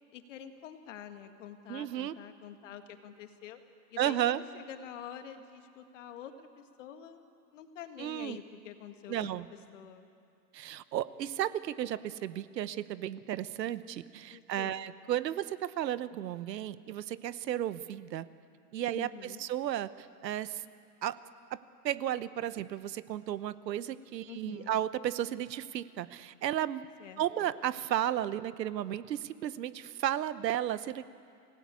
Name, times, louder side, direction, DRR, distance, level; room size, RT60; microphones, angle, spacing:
voice 1, 0.1-3.6 3.9-7.2 7.5-9.4 9.7-10.1 14.3-14.9 18.9-19.4 24.3-24.8 27.0-27.5, left 9 dB, 50° left, 7 dB, 1.9 m, -47 dB
voice 2, 1.7-2.1 4.0-4.4 8.0-8.4 9.1-9.5 10.5-18.3 18.7-20.6 21.0-21.2 21.5-21.6 21.8-26.8 27.2-31.1, right 11 dB, 85° right, 15 dB, 1.1 m, -34 dB
28.5 x 18.0 x 8.4 m, 2.4 s
supercardioid pair, 170°, 49 cm